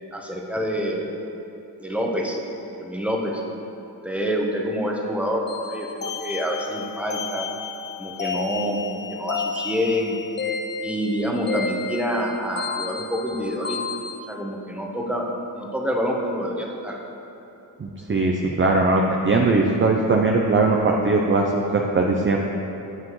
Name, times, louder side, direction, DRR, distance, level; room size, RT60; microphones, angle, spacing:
voice 1, 0.1-1.2 1.8-2.4 2.8-3.4 4.0-7.5 8.0-10.2 10.8-13.8 14.3-17.0, equal, 5° right, -1 dB, 1.2 m, -27 dB
sound 1, 5.5-14.2, left 5 dB, 25° left, 0.6 m, -32 dB
voice 2, 17.8-22.4, right 3 dB, 30° right, 1 dB, 0.6 m, -20 dB
9.6 x 7.4 x 3.2 m, 2.9 s
cardioid pair, 70°, 43 cm